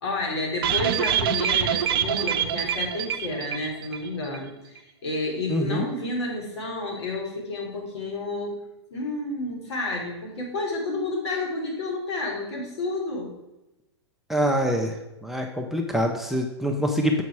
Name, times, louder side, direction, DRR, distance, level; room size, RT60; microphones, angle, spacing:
voice 1, 0.0-8.6 8.9-13.3, left 2 dB, 65° left, 0 dB, 2.9 m, -30 dB
sound 1, 0.6-4.1 4.3-4.4 4.8-4.9, right 9 dB, 55° right, 0.6 m, -25 dB
voice 2, 5.5-5.9 14.3-15.0 15.2-17.2, equal, ahead, 2 dB, 0.6 m, -25 dB
7.3 x 5.2 x 4.6 m, 0.97 s
hypercardioid pair, 135°, 15 cm